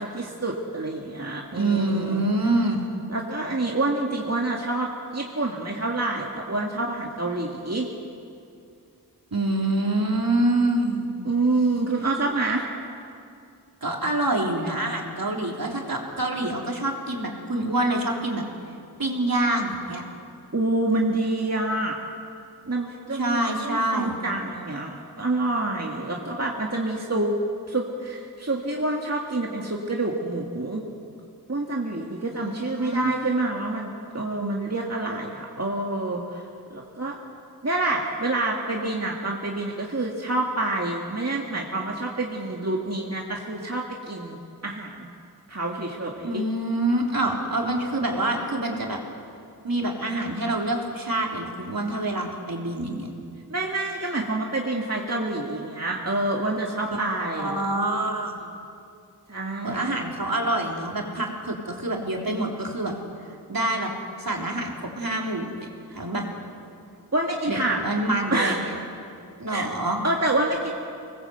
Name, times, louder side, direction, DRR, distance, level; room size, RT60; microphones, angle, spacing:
voice 1, 0.0-2.3 3.1-7.9 11.2-12.7 20.5-22.0 22.7-27.3 27.7-30.8 31.5-36.4 36.7-37.2 37.6-45.1 45.5-46.4 53.5-57.6 59.3-60.0 67.1-67.8 68.3-68.6 69.5-69.7 70.0-70.7, right 2 dB, 40° right, -1 dB, 2.0 m, -27 dB
voice 2, 1.5-3.0 9.3-11.1 13.8-18.4 19.0-20.0 23.1-24.2 32.3-33.1 46.2-49.0 49.6-53.1 56.9-58.4 59.6-62.9 63.5-63.9 64.2-66.2 67.5-68.6 69.4-70.0, right 1 dB, 60° right, 0 dB, 3.6 m, -26 dB
25.5 x 20.0 x 8.0 m, 2.5 s
wide cardioid pair, 60°, 39 cm